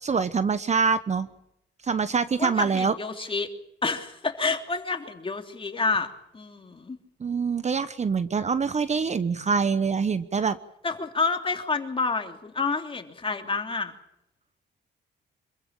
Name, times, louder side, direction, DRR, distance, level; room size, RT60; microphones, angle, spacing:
voice 1, 0.0-1.3 1.8-2.9 7.2-10.6, right 5 dB, 35° right, 14 dB, 1.0 m, -25 dB
voice 2, 2.4-3.5 3.8-6.1 6.3-7.0 10.8-13.9, left 4 dB, 25° left, 4 dB, 3.2 m, -28 dB
26.0 x 15.0 x 8.8 m, 0.81 s
cardioid pair, 90°, 20 cm